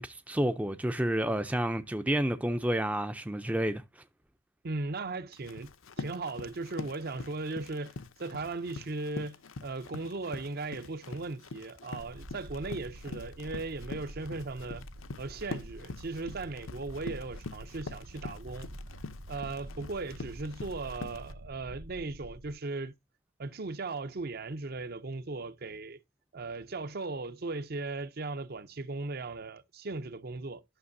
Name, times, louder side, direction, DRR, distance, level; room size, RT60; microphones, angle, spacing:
voice 1, 0.0-3.8, right 1 dB, 5° right, 0.5 m, -30 dB
voice 2, 4.6-5.7 6.0-7.9 8.2-14.8 15.2-18.7 19.3-22.9 23.4-26.0 26.3-30.6, right 3 dB, 50° right, 0.6 m, -37 dB
Run, 5.3-21.3, left 3 dB, 75° left, 0.7 m, -44 dB
sound 1, 12.0-22.5, right 1 dB, 90° right, 1.0 m, -47 dB
11.0 x 6.6 x 2.6 m
head